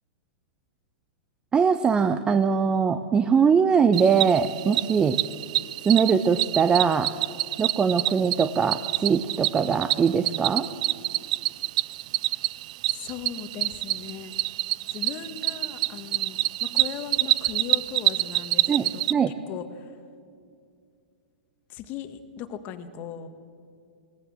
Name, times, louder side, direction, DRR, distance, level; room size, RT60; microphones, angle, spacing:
voice 1, 1.5-5.2 5.8-7.1 7.6-10.7 18.7-19.3, right 6 dB, 15° right, 11 dB, 0.7 m, -22 dB
Cricket, 3.9-19.1, right 17 dB, 50° right, 0.4 m, -27 dB
voice 2, 12.9-14.3 14.9-19.9 21.7-23.3, left 8 dB, 35° left, 10 dB, 1.7 m, -38 dB
21.0 x 17.0 x 7.7 m, 2.4 s
hypercardioid pair, 125°, 5 cm